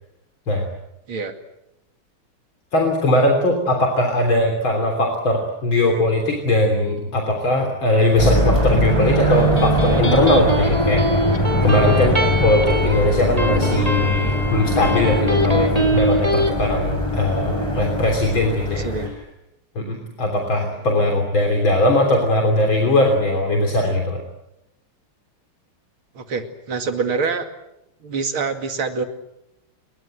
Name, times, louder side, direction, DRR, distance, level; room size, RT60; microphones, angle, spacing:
voice 1, 2.7-11.0 11.3-18.9 19.8-24.2, left 1 dB, 65° left, 3 dB, 4.2 m, -20 dB
sound 1, 8.2-19.1, equal, 15° left, 6.8 m, -21 dB
Electric guitar, 9.1-16.5, right 1 dB, 15° right, 2.8 m, -24 dB
voice 2, 18.8-19.1 26.1-27.5 28.0-29.1, right 4 dB, 70° right, 7 dB, 3.2 m, -25 dB
28.5 x 23.0 x 7.9 m, 0.85 s
omnidirectional pair, 2.4 m